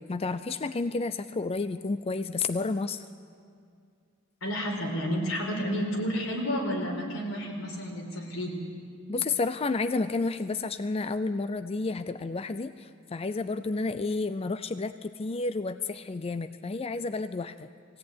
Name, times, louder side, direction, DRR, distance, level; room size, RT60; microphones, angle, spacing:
voice 1, 0.1-3.0 9.1-17.7, left 3 dB, 30° left, 12 dB, 0.5 m, -31 dB
voice 2, 4.4-8.5, equal, 90° left, 0 dB, 4.6 m, -31 dB
21.0 x 16.5 x 9.5 m, 2.3 s
head